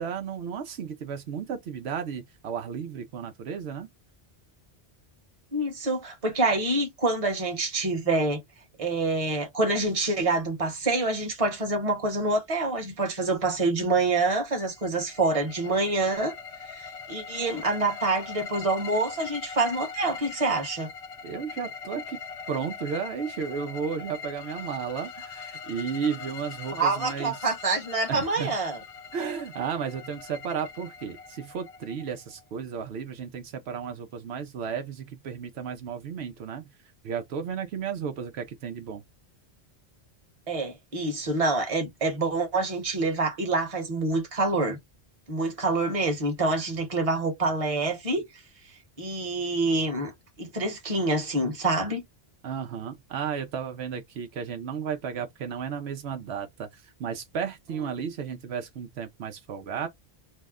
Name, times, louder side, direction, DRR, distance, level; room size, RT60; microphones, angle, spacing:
voice 1, 0.0-3.9 21.2-22.2 22.5-27.5 28.1-28.5 29.1-36.7 37.0-39.0 52.4-59.9, right 7 dB, 80° right, 0.9 m, -33 dB
voice 2, 5.5-8.4 8.8-16.3 16.7-20.9 26.7-28.8 40.5-44.8 45.3-48.2 49.0-50.1 50.4-52.0, right 2 dB, 35° right, 1.0 m, -26 dB
sound 1, 14.6-32.4, left 6 dB, 75° left, 0.9 m, -41 dB
2.7 x 2.1 x 3.5 m
omnidirectional pair, 1.1 m